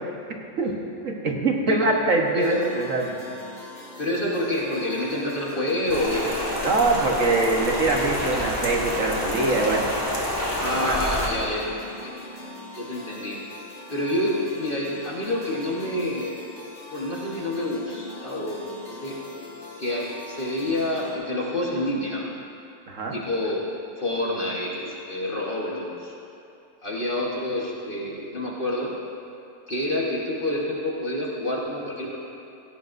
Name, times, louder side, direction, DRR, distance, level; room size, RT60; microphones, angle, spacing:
voice 1, 1.0-3.1 6.6-9.9 10.6-11.0 22.9-23.2, right 2 dB, 60° right, 0 dB, 1.6 m, -23 dB
voice 2, 2.3-2.6 4.0-6.4 10.6-12.1 12.7-13.4 13.9-16.4 16.9-19.2 19.8-22.3 23.1-23.7 24.0-26.1 26.8-29.0 29.7-32.2, left 1 dB, 40° left, -4 dB, 1.4 m, -28 dB
sound 1, 2.4-21.1, left 2 dB, 60° left, 4.2 m, -42 dB
Rain, 5.9-11.3, left 1 dB, 15° left, 2.3 m, -28 dB
17.0 x 16.5 x 2.6 m, 2.6 s
omnidirectional pair, 1.5 m